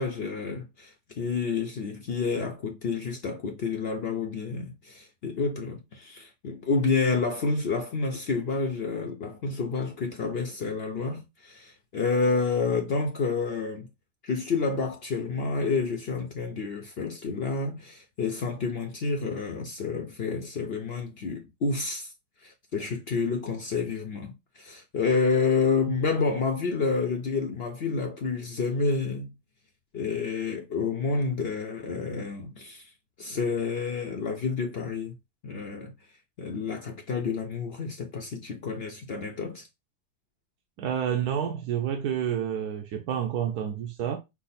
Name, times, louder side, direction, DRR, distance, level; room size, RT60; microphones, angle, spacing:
voice 1, 0.0-13.9 14.2-22.1 22.4-29.3 29.9-32.9 33.2-35.1 35.4-35.9 36.4-39.7, left 4 dB, 75° left, 0.5 m, -29 dB
voice 2, 40.8-44.2, right 9 dB, 65° right, 1.1 m, -29 dB
5.9 x 2.1 x 4.1 m
omnidirectional pair, 1.9 m